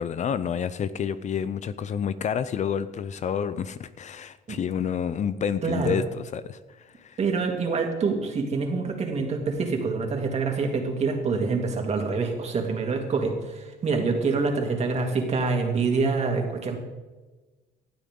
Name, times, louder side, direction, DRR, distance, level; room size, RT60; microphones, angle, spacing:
voice 1, 0.0-7.2, left 7 dB, 45° left, 14 dB, 0.6 m, -29 dB
voice 2, 5.6-6.0 7.2-16.8, right 4 dB, 40° right, 2 dB, 2.9 m, -26 dB
19.0 x 12.0 x 3.9 m, 1.2 s
cardioid pair, 110°, 17 cm